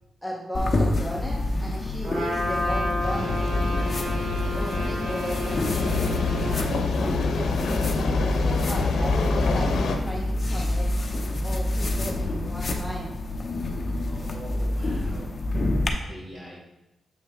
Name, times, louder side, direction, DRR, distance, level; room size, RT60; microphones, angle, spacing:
voice 1, 0.2-3.4 3.8-4.0 4.5-6.1 6.8-10.9 11.4-13.1, equal, ahead, -4 dB, 1.1 m, -35 dB
sound 1, 0.5-15.9, left 1 dB, 35° left, 0.8 m, -28 dB
Trumpet, 2.0-6.6, left 1 dB, 70° right, 2.5 m, -31 dB
sound 2, 3.0-10.0, left 4 dB, 90° left, 0.8 m, -27 dB
voice 2, 14.0-15.3 16.0-16.6, equal, 45° right, -4 dB, 2.3 m, -42 dB
7.1 x 5.0 x 3.7 m, 0.91 s
wide cardioid pair, 125°, 0 cm